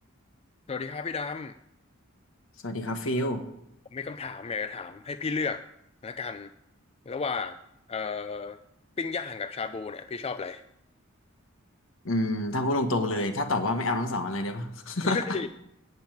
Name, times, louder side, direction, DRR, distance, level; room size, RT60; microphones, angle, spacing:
voice 1, 0.7-1.5 3.9-5.6 6.0-6.5 7.1-7.6 7.9-8.6 9.0-10.6 15.0-15.5, left 5 dB, 30° left, 10 dB, 0.4 m, -33 dB
voice 2, 2.6-3.4 12.0-15.2, left 1 dB, 65° left, 6 dB, 1.5 m, -28 dB
14.0 x 5.5 x 9.2 m, 0.81 s
head